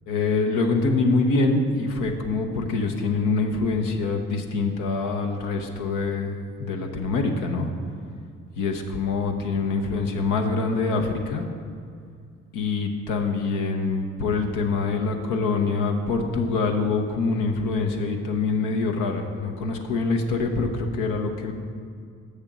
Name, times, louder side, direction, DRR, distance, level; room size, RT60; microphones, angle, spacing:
voice 1, 0.1-7.7 8.6-11.4 12.5-21.5, left 3 dB, 85° left, 4 dB, 0.9 m, -25 dB
6.9 x 6.6 x 6.1 m, 2.2 s
supercardioid pair, 60°, 30 cm